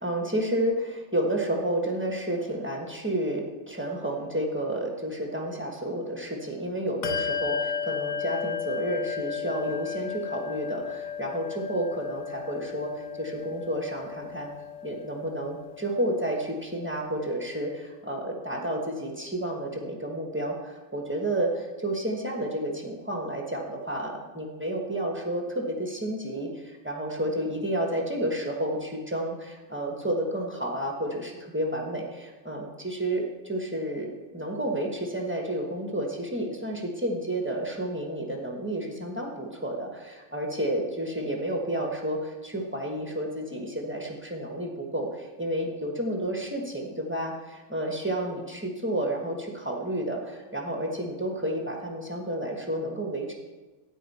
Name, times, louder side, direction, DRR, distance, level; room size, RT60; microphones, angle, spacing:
voice 1, 0.0-14.5 14.8-53.3, right 1 dB, 10° right, 1 dB, 0.7 m, -31 dB
Bell, 7.0-17.0, left 8 dB, 65° left, 1.1 m, -34 dB
13.5 x 9.7 x 4.2 m, 1.2 s
omnidirectional pair, 2.3 m